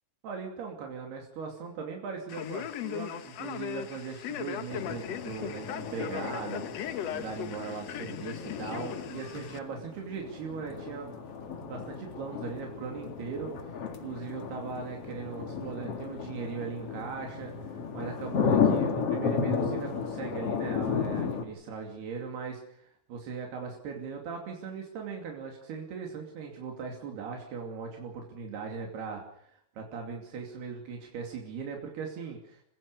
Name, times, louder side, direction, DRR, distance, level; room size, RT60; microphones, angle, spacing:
voice 1, 0.2-11.1 11.7-13.5 14.0-29.5 29.8-32.6, right 5 dB, 85° right, 1 dB, 4.7 m, -39 dB
Male speech man speaking, 2.3-9.6, left 10 dB, 75° left, 1.5 m, -38 dB
sound 1, 4.7-21.4, left 6 dB, 45° left, 2.4 m, -33 dB
29.0 x 16.0 x 6.7 m, 0.68 s
omnidirectional pair, 4.5 m